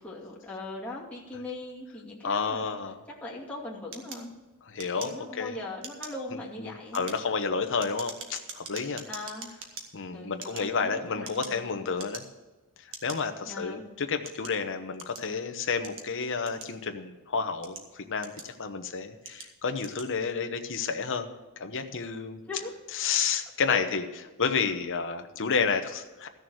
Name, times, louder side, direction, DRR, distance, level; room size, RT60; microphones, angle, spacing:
voice 1, 0.0-2.8 3.0-4.3 5.0-7.1 9.0-9.5 10.1-11.8 13.4-13.9 22.4-22.8 23.7-23.8, left 2 dB, 5° left, -5 dB, 2.5 m, -40 dB
voice 2, 2.2-3.0 4.7-5.6 6.6-9.0 9.9-12.2 13.0-17.8 18.1-21.3 21.6-22.4 22.9-24.0 24.4-26.3, left 5 dB, 60° left, 6 dB, 0.9 m, -30 dB
sound 1, 3.9-5.5 5.8-6.2 6.8-9.8 10.3-11.6 11.9-12.5 12.9-13.2 13.8-15.3 15.8-17.0 17.5-18.7 19.2-19.5 19.8-20.1, right 5 dB, 60° right, 1.6 m, -43 dB
14.5 x 6.7 x 6.4 m, 1.2 s
head